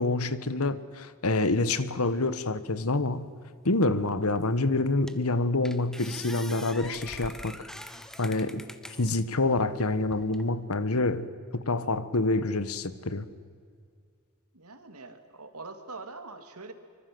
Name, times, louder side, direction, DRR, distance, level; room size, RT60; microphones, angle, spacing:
voice 1, 0.0-3.3 3.6-7.6 8.2-8.6 9.0-13.3, left 2 dB, 80° left, 1.4 m, -27 dB
sound 1, 4.4-4.5 5.1-5.3 5.6-9.2 9.8-10.4, equal, ahead, 1.1 m, -44 dB
voice 2, 14.5-16.7, right 3 dB, 85° right, 2.7 m, -43 dB
25.5 x 25.0 x 7.9 m
head